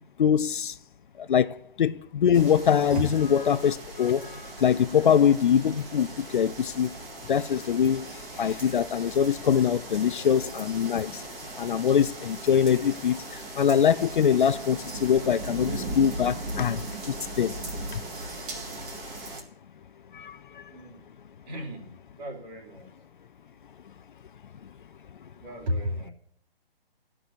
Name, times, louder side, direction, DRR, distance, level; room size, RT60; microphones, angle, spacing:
voice 1, 0.2-0.7 1.2-6.9 7.3-8.1 8.4-11.2 11.6-17.6 17.9-18.0 20.1-20.6, left 8 dB, 55° left, 0.6 m, -23 dB
sound 1, 2.3-19.4, right 2 dB, 20° right, 2.0 m, -38 dB
voice 2, 20.7-21.0 21.5-22.9 25.4-26.1, left 1 dB, 45° right, 3.0 m, -33 dB
13.0 x 6.1 x 9.7 m
hypercardioid pair, 155°, 30 cm